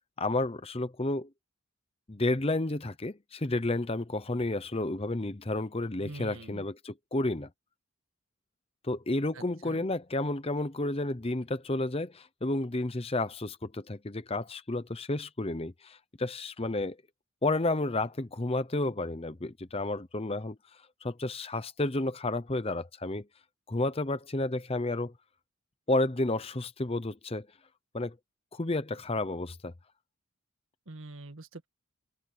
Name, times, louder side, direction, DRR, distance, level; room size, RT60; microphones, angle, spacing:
voice 1, 0.2-1.3 2.1-7.5 8.8-17.0 17.4-20.6 21.0-23.3 23.7-25.1 25.9-27.5 27.9-28.1 28.5-29.7, left 2 dB, 25° left, 0.8 m, -31 dB
voice 2, 6.0-6.7 9.3-9.8 30.9-31.7, right 2 dB, 60° right, 1.7 m, -45 dB
open air
head